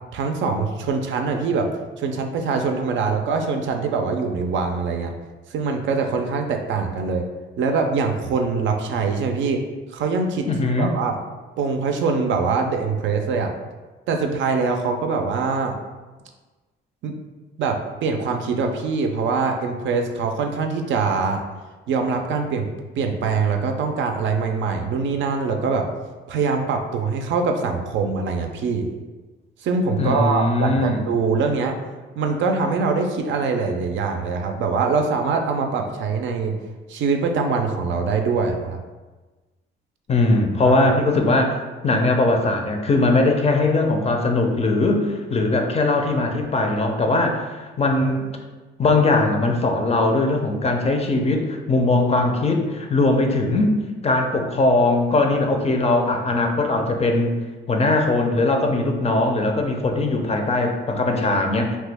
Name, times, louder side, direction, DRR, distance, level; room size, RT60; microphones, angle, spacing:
voice 1, 0.1-1.7 2.0-5.1 5.5-7.3 7.6-9.6 9.9-10.5 10.8-11.2 11.6-13.5 14.1-15.8 17.0-17.1 17.6-21.4 21.9-22.7 23.0-25.9 26.3-28.9 29.6-31.8 32.2-36.5 36.9-38.8 40.6-40.9, right 4 dB, 70° right, 4 dB, 0.4 m, -23 dB
voice 2, 10.5-10.9 30.0-31.0 40.1-41.6 41.8-48.3 48.8-53.7 54.0-57.3 57.7-61.8, left 2 dB, 30° left, 3 dB, 0.4 m, -20 dB
2.9 x 2.2 x 3.3 m, 1.2 s
cardioid pair, 90°, 20 cm